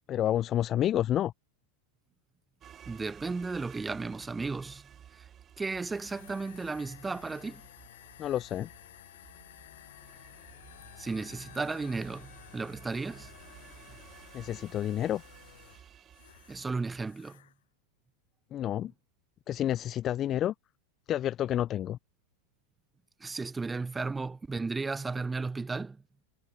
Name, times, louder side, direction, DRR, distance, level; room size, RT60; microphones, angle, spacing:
voice 1, 0.1-1.3 8.2-8.7 14.3-15.2 18.5-18.9 19.5-20.5 21.1-22.0, left 11 dB, 35° left, 0.7 m, -29 dB
sound 1, 2.6-17.1, right 9 dB, 30° right, 5.9 m, -55 dB
voice 2, 2.9-4.9 5.2-5.3 5.6-7.6 11.0-13.3 13.9-14.0 16.5-17.4 23.2-26.0, right 4 dB, 15° right, 2.6 m, -34 dB
sound 2, 5.7-16.7 17.0-17.5, left 13 dB, 75° left, 4.6 m, -53 dB
hypercardioid pair, 100°, 0 cm